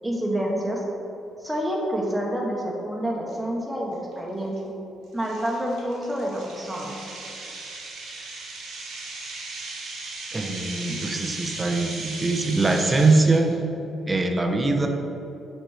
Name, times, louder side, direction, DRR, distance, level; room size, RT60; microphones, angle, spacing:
voice 1, 0.0-0.8 1.4-4.7 5.1-6.9 10.9-11.0, equal, 5° right, -3 dB, 1.2 m, -28 dB
sound 1, 3.3-3.4 3.9-4.1 4.6-4.7 5.2-13.5, right 3 dB, 85° right, 1.5 m, -37 dB
voice 2, 10.3-13.6 14.1-14.9, right 3 dB, 20° right, 3 dB, 0.7 m, -22 dB
6.1 x 4.3 x 4.9 m, 2.8 s
cardioid pair, 90°, 0 cm